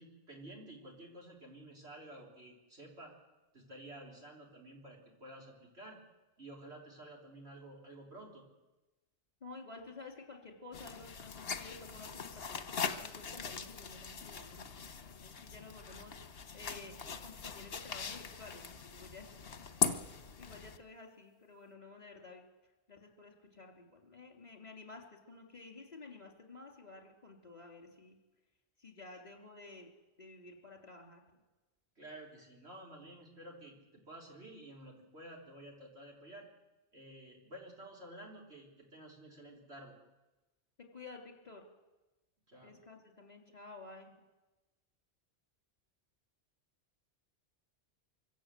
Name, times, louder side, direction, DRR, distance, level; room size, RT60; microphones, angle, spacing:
voice 1, 0.0-3.1 3.5-6.0 6.4-8.4 32.0-36.5 36.9-39.9 42.5-42.7, right 1 dB, 70° right, -1 dB, 4.3 m, -52 dB
voice 2, 9.4-12.6 12.9-16.2 16.5-16.9 17.2-19.9 20.4-22.4 22.9-28.2 28.8-29.9 30.2-31.2 40.9-41.7 42.6-44.1, left 3 dB, 35° left, 2 dB, 3.6 m, -52 dB
sound 1, 10.7-20.8, left 5 dB, 60° left, 1.4 m, -40 dB
24.0 x 16.5 x 7.7 m, 1.1 s
omnidirectional pair, 1.1 m